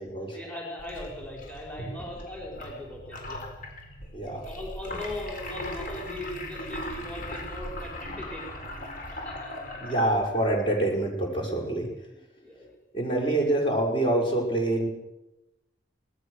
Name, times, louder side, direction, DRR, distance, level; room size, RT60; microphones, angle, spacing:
voice 1, 0.3-3.4 4.5-8.7 9.1-9.5 12.4-12.8 13.2-13.3, left 1 dB, 5° left, -2 dB, 5.5 m, -39 dB
sound 1, 0.8-10.5, left 1 dB, 45° left, 4.6 m, -39 dB
voice 2, 9.8-11.9 12.9-14.9, right 1 dB, 25° left, 0 dB, 6.1 m, -26 dB
25.5 x 19.5 x 6.7 m, 0.95 s
head